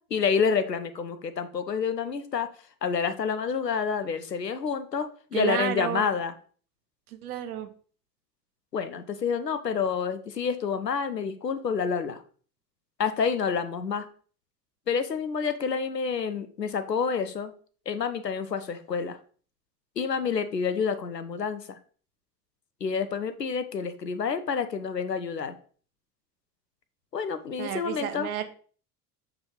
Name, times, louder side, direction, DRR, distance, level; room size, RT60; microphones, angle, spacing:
voice 1, 0.1-2.5 2.8-6.3 8.7-12.2 13.0-14.1 14.9-17.5 17.9-19.2 20.0-21.8 22.8-25.5 27.1-28.3, left 6 dB, 90° left, 11 dB, 0.6 m, -28 dB
voice 2, 5.3-6.1 7.2-7.7 27.6-28.4, right 11 dB, 65° right, 10 dB, 0.9 m, -31 dB
6.7 x 4.4 x 3.7 m, 0.43 s
figure-of-eight pair, 70°, 48 cm